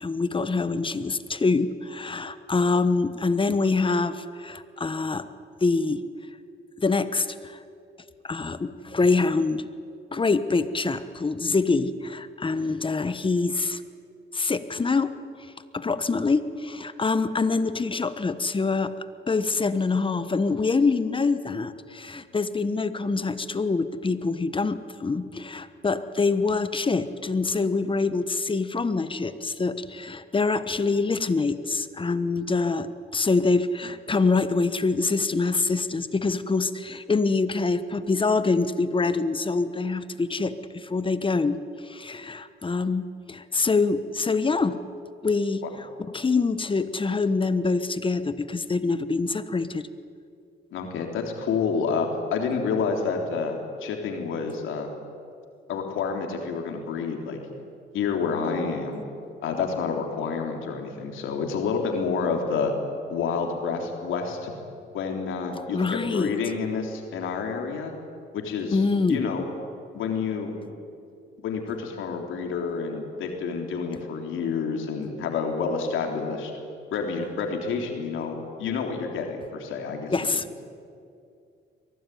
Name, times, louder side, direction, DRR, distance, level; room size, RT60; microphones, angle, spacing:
voice 1, 0.0-5.2 5.6-6.0 6.8-7.6 8.2-9.6 10.1-13.8 14.3-15.1 15.7-18.9 19.3-41.6 41.8-44.8 45.2-49.9 65.7-66.3 68.7-69.3 80.1-80.4, left 4 dB, 25° left, 12 dB, 1.2 m, -25 dB
voice 2, 50.7-54.9 55.7-57.4 57.9-59.0 59.4-62.7 63.1-64.5 64.9-67.9 68.3-69.4 69.9-70.7 71.4-76.5 76.9-80.4, left 5 dB, 80° left, 2 dB, 3.7 m, -29 dB
23.0 x 18.0 x 9.4 m, 2.4 s
cardioid pair, 90°, 20 cm